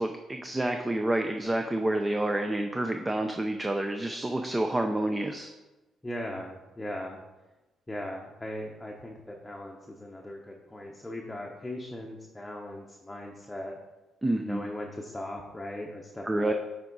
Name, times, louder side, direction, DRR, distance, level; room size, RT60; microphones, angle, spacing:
voice 1, 0.0-5.5 14.2-14.7 16.2-16.5, right 1 dB, 15° right, 5 dB, 0.5 m, -28 dB
voice 2, 6.0-7.2 7.9-13.7 14.4-16.5, left 1 dB, 10° left, -1 dB, 0.8 m, -39 dB
8.0 x 4.9 x 4.0 m, 1.1 s
cardioid pair, 90°, 0 cm